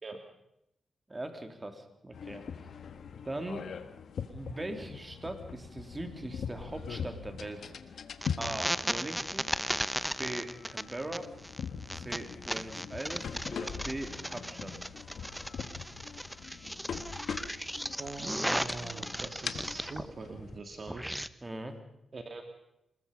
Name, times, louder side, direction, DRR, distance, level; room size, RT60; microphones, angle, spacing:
voice 1, 1.1-2.4 3.2-3.7 4.3-7.7 8.4-9.5 10.2-11.3 11.9-14.7 21.4-21.8, right 1 dB, 25° right, 6 dB, 3.3 m, -40 dB
sound 1, 2.1-20.6, left 6 dB, 75° left, 1.5 m, -42 dB
sound 2, 8.2-20.1 20.4-21.3, equal, 5° right, 0.9 m, -36 dB
voice 2, 18.0-21.1 22.1-22.4, right 3 dB, 45° right, 5 dB, 2.3 m, -43 dB
25.5 x 21.0 x 5.5 m, 0.79 s
cardioid pair, 70°, 0 cm